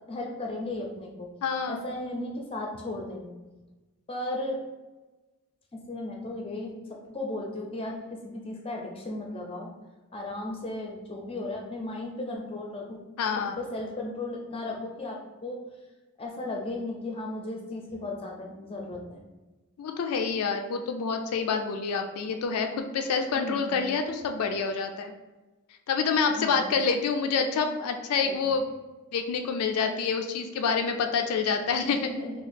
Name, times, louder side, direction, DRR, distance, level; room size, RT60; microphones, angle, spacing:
voice 1, 0.1-1.3 1.7-3.3 4.1-4.6 5.7-9.7 10.1-13.0 13.6-15.6 16.2-19.2 23.3-23.8 26.3-26.8 28.2-28.4 31.7-32.3, left 2 dB, 25° left, 0 dB, 0.5 m, -35 dB
voice 2, 1.4-1.8 13.2-13.6 19.8-25.1 25.9-28.6 29.1-32.0, left 5 dB, 80° left, 5 dB, 0.3 m, -27 dB
2.8 x 2.3 x 4.1 m, 1.2 s
head